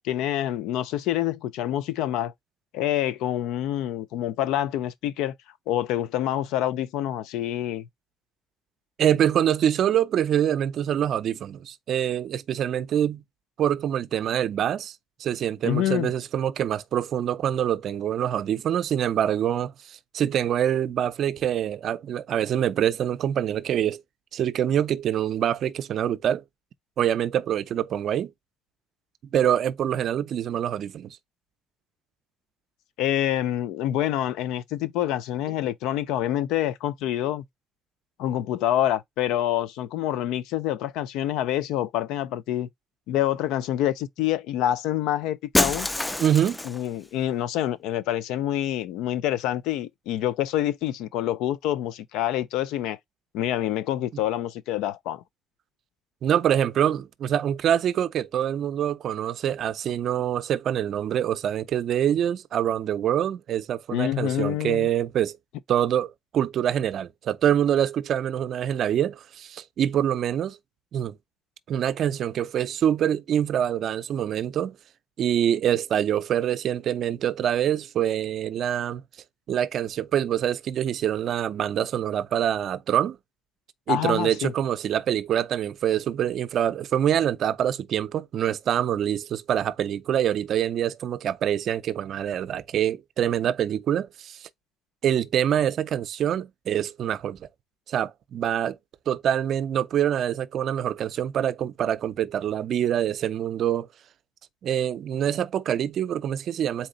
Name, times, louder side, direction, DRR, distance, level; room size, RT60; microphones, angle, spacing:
voice 1, 0.0-2.3 2.7-5.3 5.7-7.9 15.6-16.1 33.0-37.4 38.2-42.7 43.1-45.9 46.6-53.0 53.3-55.2 63.9-64.9 83.9-84.5, left 12 dB, 85° left, 0.4 m, -27 dB
voice 2, 9.0-13.2 13.6-24.0 24.3-26.4 27.0-28.3 29.3-31.2 46.2-46.6 54.1-54.2 56.2-65.3 65.7-70.6 70.9-71.2 71.7-74.8 75.2-79.0 79.5-83.2 83.9-94.5 95.0-97.5 97.9-98.8 99.1-103.9 104.6-106.9, right 10 dB, 65° right, 0.5 m, -25 dB
Shatter, 45.5-46.9, left 1 dB, 15° left, 0.4 m, -26 dB
4.2 x 2.8 x 3.8 m
supercardioid pair, 70°, 0 cm